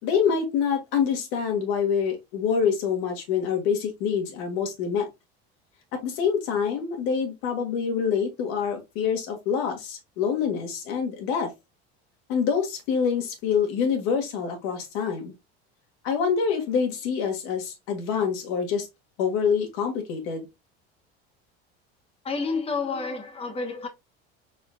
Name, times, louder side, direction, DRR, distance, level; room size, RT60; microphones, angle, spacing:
voice 1, 0.0-5.1 5.9-11.5 12.3-15.3 16.0-18.9 19.2-20.5, left 6 dB, 70° left, 1.7 m, -26 dB
voice 2, 22.2-23.9, left 4 dB, 20° left, 0.9 m, -29 dB
4.1 x 3.8 x 2.2 m
hypercardioid pair, 85°, 32 cm